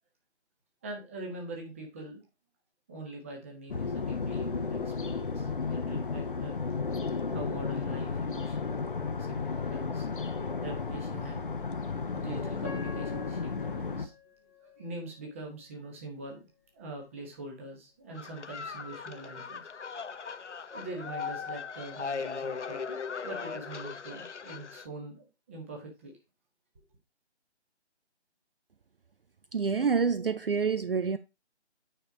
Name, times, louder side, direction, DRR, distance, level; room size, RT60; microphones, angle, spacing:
voice 1, 0.8-2.2 2.9-6.6 7.3-8.9 9.2-10.1 10.6-11.4 12.1-14.1 14.6-16.5 16.7-19.7 20.7-23.0 23.2-26.1, right 2 dB, 10° right, 1.2 m, -43 dB
sound 1, 3.7-14.1, left 4 dB, 50° left, 1.0 m, -33 dB
Piano, 12.6-15.6 16.2-16.3 17.0-17.2, left 7 dB, 15° left, 1.0 m, -48 dB
sound 2, 18.1-24.9, left 5 dB, 85° left, 0.7 m, -38 dB
voice 2, 29.5-31.2, right 5 dB, 55° right, 0.5 m, -27 dB
9.1 x 4.5 x 4.8 m
figure-of-eight pair, 160°, 35 cm